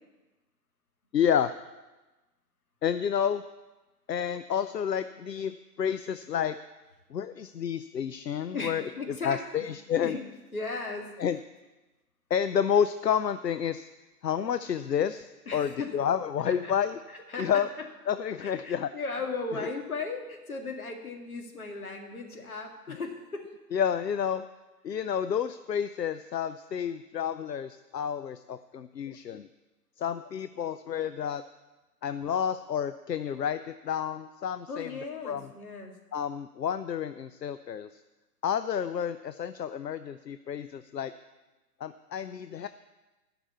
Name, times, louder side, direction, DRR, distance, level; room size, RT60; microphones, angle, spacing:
voice 1, 1.1-1.5 2.8-3.4 4.1-6.6 7.1-8.8 9.1-10.2 11.2-11.4 12.3-13.9 14.2-17.0 17.4-17.7 18.1-18.9 22.9-23.0 23.7-24.5 24.8-29.5 30.0-31.4 32.0-34.9 35.2-35.5 36.1-37.9 38.4-41.1 41.8-42.7, left 8 dB, 80° left, 12 dB, 0.6 m, -30 dB
voice 2, 8.5-9.7 10.0-10.2 10.5-11.1 15.5-15.9 16.5-16.7 17.3-17.6 18.4-23.5 34.7-35.9, left 3 dB, 60° left, 3 dB, 2.0 m, -36 dB
10.5 x 6.0 x 8.3 m, 1.1 s
figure-of-eight pair, 130°, 49 cm